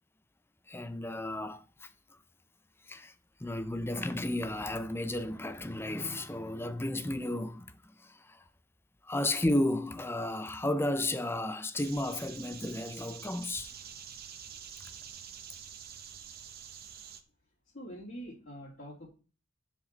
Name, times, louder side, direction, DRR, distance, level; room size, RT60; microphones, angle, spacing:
voice 1, 0.7-1.9 2.9-3.1 3.4-8.4 9.0-13.7, left 1 dB, 10° left, 0.6 m, -33 dB
sound 1, 11.8-17.2, right 8 dB, 50° right, 0.8 m, -47 dB
voice 2, 17.7-19.1, equal, 40° left, 3.0 m, -44 dB
9.7 x 5.0 x 4.0 m
head